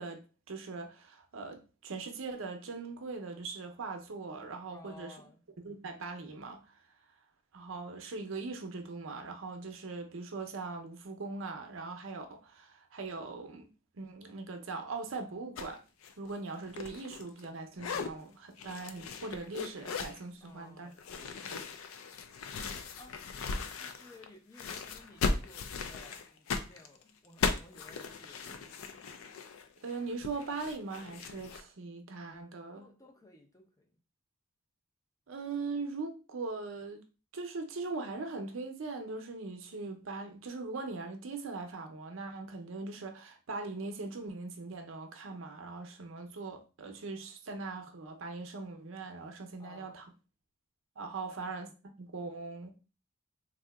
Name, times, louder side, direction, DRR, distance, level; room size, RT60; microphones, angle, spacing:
voice 1, 0.0-5.2 5.6-6.6 7.5-13.7 13.9-15.8 16.2-20.9 21.5-21.6 29.8-32.9 35.3-37.0 37.3-50.0 51.0-51.7 52.0-52.8, right 3 dB, 70° right, 0.6 m, -40 dB
voice 2, 4.7-5.4 20.4-21.6 23.0-23.2 23.8-28.8 32.8-33.9 49.6-50.1 51.3-51.6, left 2 dB, 15° left, 0.5 m, -56 dB
sound 1, 15.6-15.7 16.0-17.5 17.7-18.1 18.6-20.2 21.0-24.3 24.5-31.6, left 4 dB, 80° left, 0.4 m, -38 dB
3.6 x 2.7 x 2.2 m
head